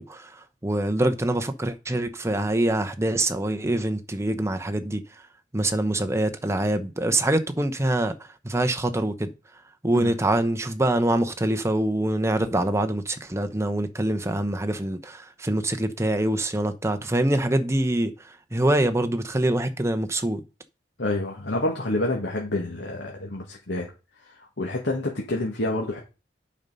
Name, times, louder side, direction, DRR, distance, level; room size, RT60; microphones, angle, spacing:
voice 1, 0.0-5.0 5.5-8.1 8.4-9.3 9.8-20.4, right 1 dB, 15° right, 0.8 m, -25 dB
voice 2, 21.0-23.9 24.2-26.0, left 2 dB, 85° left, 1.7 m, -28 dB
8.7 x 5.4 x 5.4 m
head